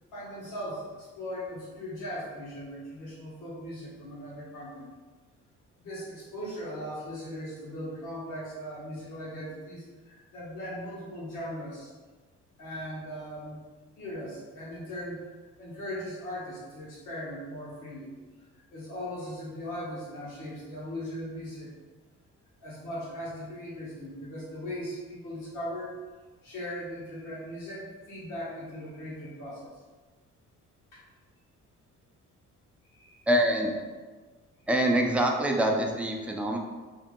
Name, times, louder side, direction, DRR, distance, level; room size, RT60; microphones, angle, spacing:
voice 1, 0.1-4.9 5.8-11.9 12.6-13.6 14.0-15.3 15.6-18.1 18.7-21.7 22.6-25.9 26.4-29.8 30.9-31.0 32.9-33.3, equal, 85° left, -7 dB, 1.3 m, -39 dB
voice 2, 33.3-33.7 34.7-36.6, right 1 dB, 5° right, 1 dB, 0.4 m, -25 dB
2.8 x 2.6 x 3.6 m, 1.3 s
cardioid pair, 90°, 30 cm